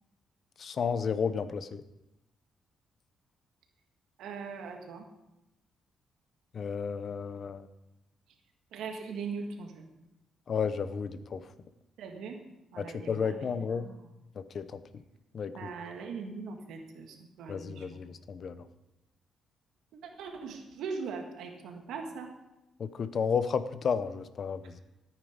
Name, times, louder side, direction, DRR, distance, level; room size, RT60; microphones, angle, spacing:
voice 1, 0.6-1.8 6.5-7.6 10.5-11.4 12.8-13.9 14.4-14.8 15.3-15.7 17.5-18.6 22.8-24.8, left 6 dB, 45° left, 12 dB, 0.7 m, -32 dB
voice 2, 4.2-5.1 8.7-9.9 12.0-12.4 12.7-14.0 15.5-18.0 20.2-22.3, right 5 dB, 85° right, 3 dB, 1.8 m, -40 dB
13.5 x 9.1 x 5.1 m, 0.92 s
cardioid pair, 140°, 0 cm